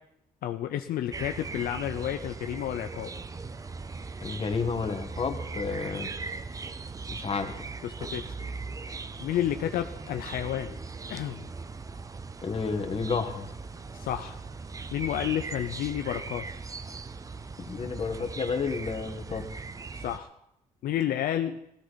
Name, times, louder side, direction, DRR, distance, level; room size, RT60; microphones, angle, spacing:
voice 1, 0.4-3.1 7.8-8.2 9.2-10.8 11.1-11.5 13.9-14.4 14.9-16.5 20.0-20.3 20.8-21.6, left 11 dB, 80° left, 7 dB, 0.6 m, -31 dB
sound 1, 1.1-20.2, right 4 dB, 25° right, 0.6 m, -39 dB
voice 2, 4.2-6.1 7.1-7.5 8.0-8.1 12.4-13.5 17.6-19.5, left 5 dB, 40° left, 5 dB, 1.6 m, -31 dB
16.0 x 13.5 x 4.1 m, 0.79 s
cardioid pair, 105°, 15 cm